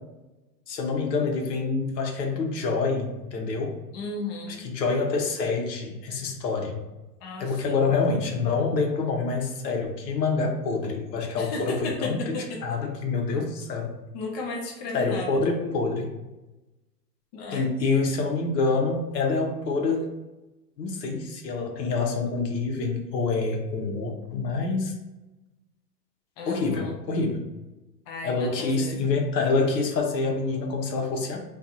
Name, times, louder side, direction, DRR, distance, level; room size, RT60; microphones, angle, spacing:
voice 1, 0.7-3.8 4.6-6.8 7.4-12.3 12.6-13.9 14.9-16.1 17.5-20.1 20.8-24.9 26.4-27.5 28.2-31.4, left 4 dB, 85° left, 2 dB, 1.0 m, -26 dB
voice 2, 3.9-4.7 7.2-7.9 11.3-12.6 14.1-15.5 17.3-17.7 26.4-27.0 28.1-29.0, left 3 dB, 30° left, 0 dB, 0.4 m, -34 dB
2.6 x 2.5 x 4.1 m, 1.0 s
hypercardioid pair, 135°, 49 cm